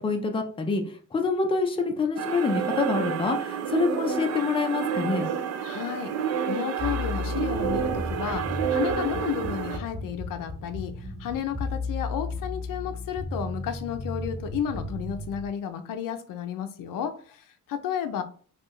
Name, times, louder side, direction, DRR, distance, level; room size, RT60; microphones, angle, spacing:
voice 1, 0.0-0.8 1.1-5.3, left 4 dB, 15° left, 0.4 m, -26 dB
sound 1, 2.2-9.8, right 8 dB, 55° right, 0.5 m, -29 dB
voice 2, 5.6-6.1 6.5-18.2, left 9 dB, 90° left, 0.5 m, -32 dB
sound 2, 6.8-15.5, left 2 dB, 30° right, 1.3 m, -34 dB
4.3 x 2.4 x 3.1 m
cardioid pair, 155°, 32 cm